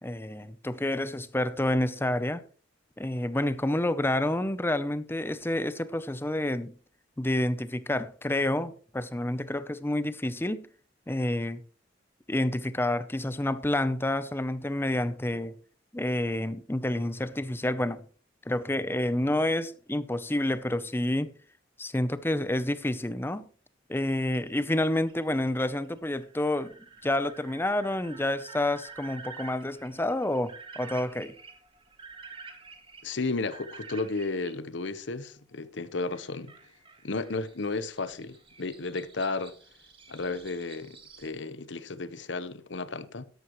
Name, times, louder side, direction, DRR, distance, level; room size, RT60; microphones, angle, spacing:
voice 1, 0.0-2.4 3.0-6.7 7.2-10.7 11.1-11.6 12.3-15.5 15.9-18.0 18.5-21.3 21.8-23.4 23.9-26.7 27.0-31.3, left 1 dB, 10° left, 0.7 m, -29 dB
sound 1, 23.9-34.5 36.1-41.3, right 4 dB, 30° right, 1.9 m, -49 dB
voice 2, 33.0-36.5 37.0-39.5 40.1-43.2, left 3 dB, 70° left, 0.9 m, -33 dB
13.0 x 11.5 x 3.1 m
head